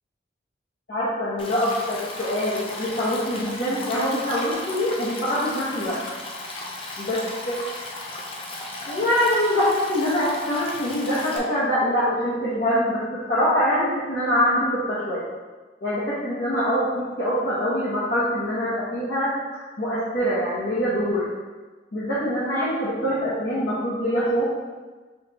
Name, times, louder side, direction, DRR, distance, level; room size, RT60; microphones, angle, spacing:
voice 1, 0.9-6.0 7.0-7.2 7.5-7.6 8.9-15.2 15.8-21.3 21.9-24.4, equal, 60° left, -11 dB, 1.0 m, -24 dB
Stream, 1.4-11.4, left 2 dB, 30° left, 0.5 m, -35 dB
5.7 x 3.1 x 2.9 m, 1.3 s
head